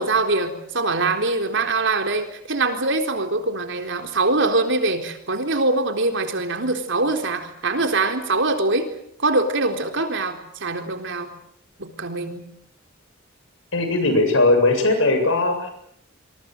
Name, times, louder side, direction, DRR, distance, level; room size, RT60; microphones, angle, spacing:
voice 1, 0.0-8.9 9.2-11.3 11.8-12.5, right 2 dB, 60° right, 6 dB, 4.1 m, -23 dB
voice 2, 13.7-15.7, left 2 dB, 65° left, 6 dB, 7.5 m, -19 dB
27.0 x 23.5 x 7.9 m, 0.72 s
head